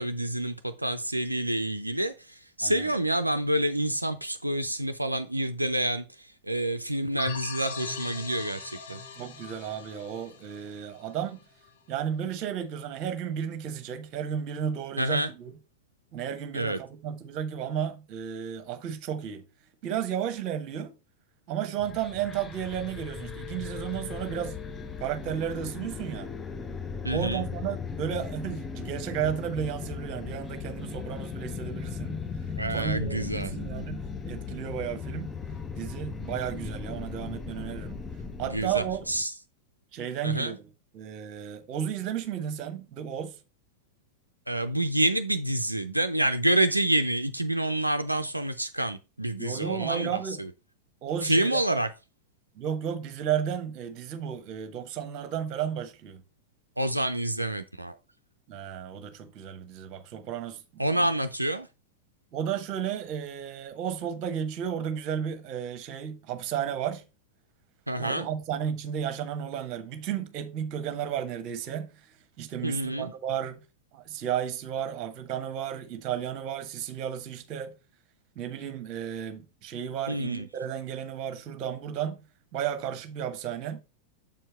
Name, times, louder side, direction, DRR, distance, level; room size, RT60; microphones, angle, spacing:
voice 1, 0.0-9.0 15.0-15.3 16.5-16.8 27.0-27.4 32.6-33.5 38.4-39.3 40.2-40.5 44.5-50.5 51.2-51.9 56.8-58.0 60.8-61.7 67.9-68.3 72.6-73.1 80.1-80.4, right 1 dB, 85° right, 0.4 m, -28 dB
sound 1, 7.2-11.6, left 6 dB, 60° left, 1.1 m, -40 dB
voice 2, 9.2-11.4 11.9-15.5 16.1-19.5 19.8-20.9 21.5-24.6 25.0-26.3 27.1-32.2 32.7-35.3 35.7-38.0 38.4-39.1 39.9-40.6 40.9-43.4 49.4-50.4 51.0-51.6 52.5-56.2 58.5-60.9 62.3-67.0 68.0-73.6 73.9-77.7 78.3-82.2 82.5-83.8, right 9 dB, 40° right, 1.1 m, -33 dB
sound 2, 21.8-39.2, left 5 dB, 15° left, 0.7 m, -37 dB
7.2 x 4.5 x 4.4 m
figure-of-eight pair, 90°, 0 cm